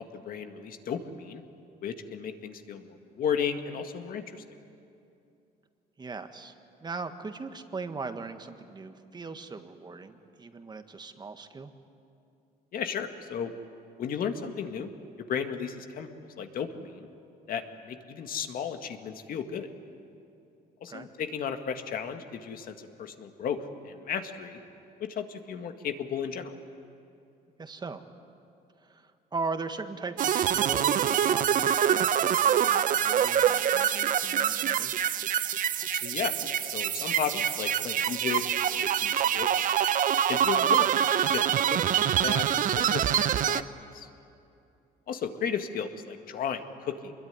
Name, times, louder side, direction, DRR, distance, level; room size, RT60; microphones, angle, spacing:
voice 1, 0.0-1.4 1.8-4.4 12.7-13.5 14.0-14.9 15.2-17.1 17.5-19.7 20.8-24.6 25.0-26.6 35.8-38.4 38.7-39.7 40.3-41.8 42.0-43.1 43.5-43.6 43.9-44.1 45.1-47.1, left 7 dB, 60° left, 6 dB, 2.0 m, -34 dB
voice 2, 6.0-6.5 6.8-11.7 20.9-21.1 27.6-28.1 28.8-35.1, right 4 dB, 25° right, 7 dB, 1.7 m, -39 dB
sound 1, 30.2-43.6, right 9 dB, 50° right, 0.8 m, -25 dB
26.0 x 21.5 x 9.8 m, 2.6 s
cardioid pair, 110°, 17 cm